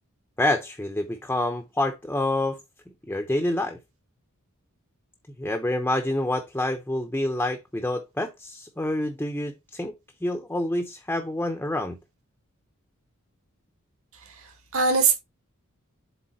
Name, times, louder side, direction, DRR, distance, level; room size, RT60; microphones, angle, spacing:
voice 1, 0.4-2.6 3.1-3.8 5.4-9.9 10.2-12.0, left 1 dB, 10° left, 0.7 m, -27 dB
voice 2, 14.3-15.1, right 4 dB, 70° right, 2.2 m, -23 dB
7.7 x 3.6 x 4.1 m
head